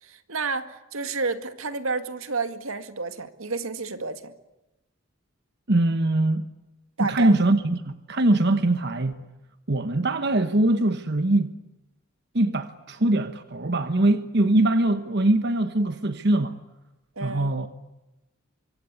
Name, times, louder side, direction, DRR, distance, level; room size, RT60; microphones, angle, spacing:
voice 1, 0.0-4.3 7.0-7.3 17.2-17.5, right 4 dB, 85° right, 2.1 m, -30 dB
voice 2, 5.7-6.5 7.0-9.1 9.7-11.5 12.3-16.6 17.2-17.7, right 2 dB, 55° right, 1.2 m, -22 dB
26.0 x 24.5 x 8.4 m
head